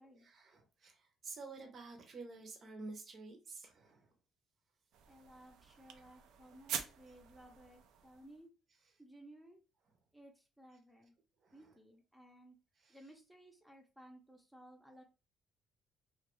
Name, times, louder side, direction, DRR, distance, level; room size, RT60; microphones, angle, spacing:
voice 1, 0.1-4.1 11.4-11.7 12.8-13.0, right 3 dB, 45° right, 0.7 m, -50 dB
sound 1, 4.9-8.5, right 8 dB, 80° right, 0.3 m, -46 dB
voice 2, 5.1-8.5 9.0-9.6 10.1-11.2 11.5-12.6 12.9-15.0, right 1 dB, 5° right, 0.5 m, -58 dB
2.2 x 2.2 x 2.9 m
cardioid pair, 110°, 0 cm